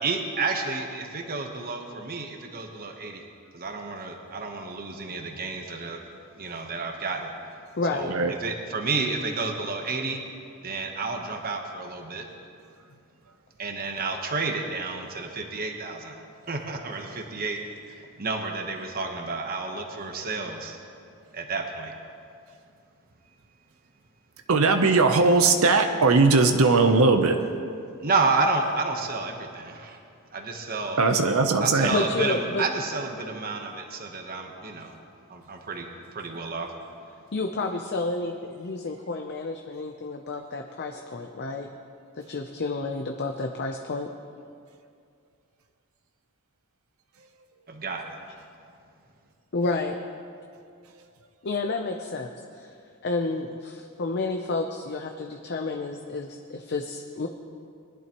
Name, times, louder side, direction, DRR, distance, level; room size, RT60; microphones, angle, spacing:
voice 1, 0.0-3.2 3.5-6.0 6.4-7.3 7.9-8.1 8.4-10.2 10.6-12.3 13.6-16.1 16.5-17.6 17.9-20.8 21.3-21.9 28.0-30.0 30.3-31.0 31.6-34.9 35.3-36.7 47.7-48.1, right 3 dB, 45° right, 3 dB, 1.0 m, -30 dB
voice 2, 7.8-8.1 12.9-13.0 31.9-32.6 37.3-41.7 42.2-44.1 49.5-50.0 51.4-52.7 53.0-57.3, left 3 dB, 50° left, 4 dB, 0.6 m, -30 dB
voice 3, 24.5-27.4 31.0-32.0, right 3 dB, 70° right, 6 dB, 0.7 m, -19 dB
21.0 x 11.0 x 3.0 m, 2.4 s
head